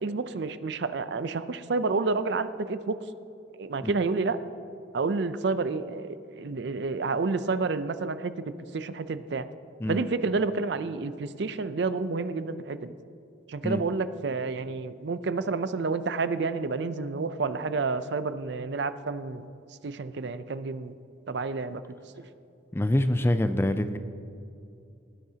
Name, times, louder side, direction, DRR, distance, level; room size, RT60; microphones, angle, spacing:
voice 1, 0.0-3.0 3.6-4.4 4.9-8.3 8.7-9.4 9.9-12.9 13.5-19.5 19.8-20.9 21.3-21.8, right 4 dB, 60° right, 13 dB, 0.5 m, -29 dB
voice 2, 22.7-24.0, left 1 dB, 10° left, 10 dB, 0.3 m, -25 dB
19.5 x 10.5 x 2.8 m, 2.6 s
head